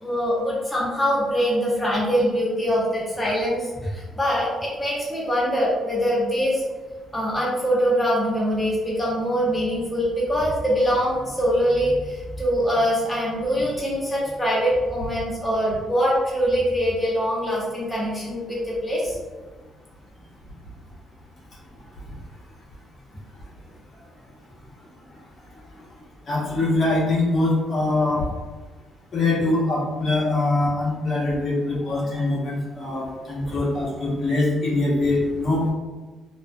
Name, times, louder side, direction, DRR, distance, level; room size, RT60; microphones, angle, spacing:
voice 1, 0.0-6.6 7.1-19.2 32.1-32.2 33.4-33.6, equal, 15° left, -6 dB, 0.7 m, -23 dB
voice 2, 26.3-28.2 29.1-35.6, left 2 dB, 55° left, -6 dB, 0.9 m, -23 dB
2.4 x 2.3 x 2.2 m, 1.3 s
cardioid pair, 90°, 0 cm